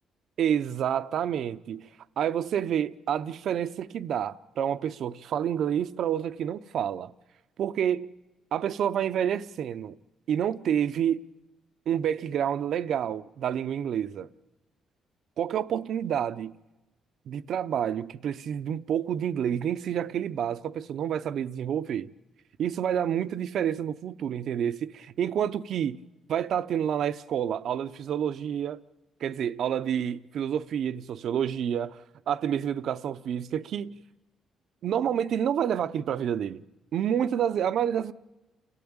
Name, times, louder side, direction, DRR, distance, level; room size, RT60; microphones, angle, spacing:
voice 1, 0.4-1.9 2.2-7.1 7.6-8.1 8.5-10.0 10.3-11.3 11.9-14.3 15.4-16.6 17.3-22.1 22.6-26.0 26.3-28.8 29.2-32.0 32.3-34.0 34.8-36.6 36.9-38.1, right 9 dB, 65° right, 0.7 m, -28 dB
29.0 x 14.0 x 8.8 m
cardioid pair, 100°, 0 cm